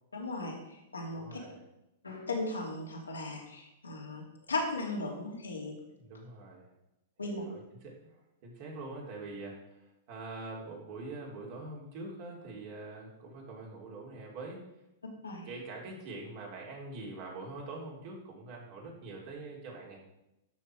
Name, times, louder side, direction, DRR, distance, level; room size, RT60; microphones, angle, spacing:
voice 1, 0.1-1.4 2.0-5.7 7.2-7.5 15.2-15.5, left 2 dB, 85° left, -2 dB, 2.8 m, -37 dB
voice 2, 1.1-1.6 5.8-6.7 7.2-8.1 8.4-14.6 15.4-20.0, right 2 dB, 50° right, -2 dB, 3.7 m, -44 dB
13.0 x 6.1 x 4.8 m, 0.89 s
figure-of-eight pair, 105°, 0 cm